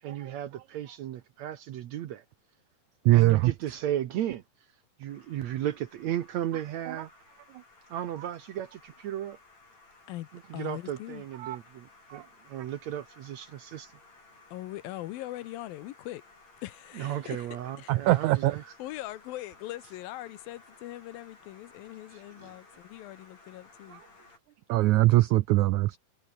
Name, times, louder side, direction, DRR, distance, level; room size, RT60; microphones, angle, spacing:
voice 1, 0.0-2.2 3.1-4.4 5.0-7.1 7.9-9.4 10.5-13.9 17.0-18.7 22.1-22.5, right 11 dB, 65° right, 1.9 m, -35 dB
voice 2, 3.0-3.5 6.9-7.0 11.4-11.6 12.1-12.2 17.9-18.6 24.7-26.0, right 17 dB, 85° right, 1.7 m, -22 dB
sound 1, 5.1-24.4, left 3 dB, 50° left, 9.2 m, -57 dB
voice 3, 10.5-11.2 14.5-16.2 16.6-17.5 17.8-17.9 18.8-24.0, left 15 dB, 80° left, 2.7 m, -41 dB
omnidirectional pair, 4.1 m